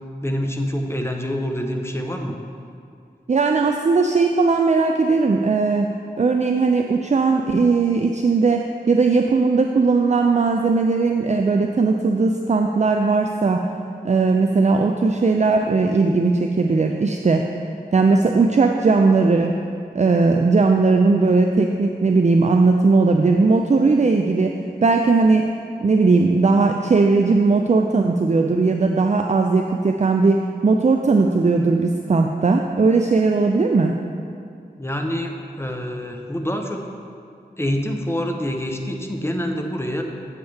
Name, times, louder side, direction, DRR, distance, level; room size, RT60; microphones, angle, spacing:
voice 1, 0.2-2.3 34.8-36.8 37.6-40.0, equal, 15° left, 2 dB, 0.8 m, -26 dB
voice 2, 3.3-13.7 14.0-17.5 17.9-19.5 19.9-25.5 25.8-33.9, right 3 dB, 40° right, 4 dB, 0.4 m, -18 dB
9.0 x 7.2 x 3.4 m, 2.4 s
wide cardioid pair, 40°, 17 cm